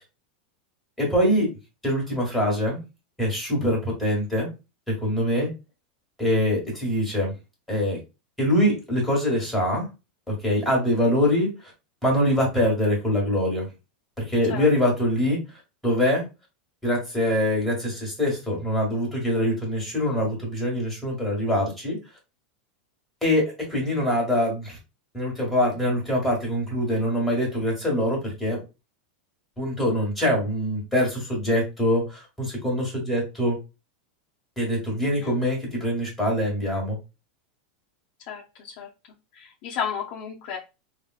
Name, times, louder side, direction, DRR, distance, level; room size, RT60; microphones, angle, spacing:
voice 1, 1.0-1.5 1.8-2.8 3.2-4.5 4.9-5.5 6.2-7.3 7.7-8.0 8.4-9.8 10.3-11.7 12.0-13.7 14.2-15.4 15.8-16.2 16.8-22.0 23.2-24.8 25.1-28.6 29.6-33.6 34.6-37.0, equal, 5° left, -3 dB, 1.6 m, -24 dB
voice 2, 38.3-38.9 39.3-40.6, left 8 dB, 50° left, -3 dB, 0.7 m, -33 dB
3.4 x 2.4 x 2.4 m, 0.28 s
supercardioid pair, 140°, 5 cm